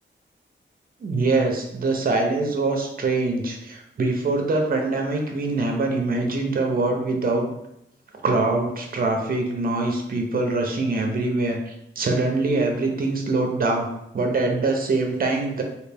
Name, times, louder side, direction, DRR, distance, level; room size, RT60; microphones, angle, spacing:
voice 1, 1.0-7.5 8.2-13.9 14.1-15.6, right 3 dB, 45° right, 3 dB, 0.6 m, -23 dB
3.1 x 2.4 x 3.4 m, 0.80 s
wide cardioid pair, 125°, 20 cm